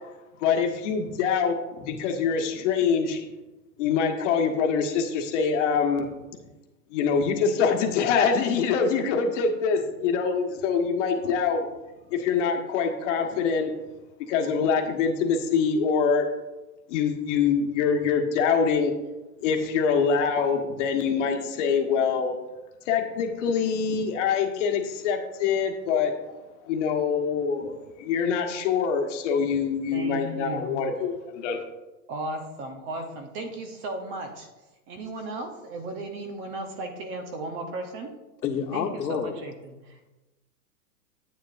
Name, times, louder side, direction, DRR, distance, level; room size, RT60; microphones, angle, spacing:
voice 1, 0.4-3.3 3.8-6.1 6.9-11.7 12.1-13.7 14.3-16.3 16.9-18.9 19.4-22.3 22.9-31.6, left 6 dB, 45° left, 3 dB, 1.4 m, -24 dB
voice 2, 29.9-30.8 32.1-34.5 34.9-38.1 38.7-40.1, right 2 dB, 25° right, 5 dB, 0.8 m, -35 dB
voice 3, 38.4-39.4, left 7 dB, 85° left, 3 dB, 1.4 m, -28 dB
10.0 x 8.5 x 2.6 m, 1.1 s
hypercardioid pair, 140°, 49 cm